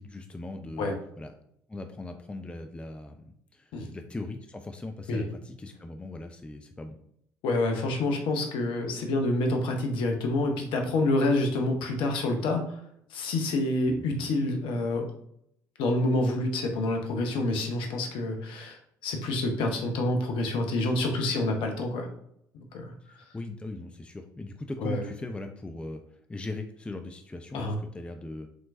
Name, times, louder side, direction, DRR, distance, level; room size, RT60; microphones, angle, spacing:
voice 1, 0.0-1.3 1.7-3.2 3.5-7.0 13.9-14.3 23.0-28.5, left 2 dB, 10° left, 6 dB, 0.4 m, -39 dB
voice 2, 7.4-12.8 13.1-15.1 15.8-22.1 22.7-22.9 24.8-25.0 27.5-27.8, left 2 dB, 55° left, 3 dB, 0.8 m, -27 dB
4.9 x 3.7 x 2.6 m, 0.72 s
figure-of-eight pair, 55°, 10 cm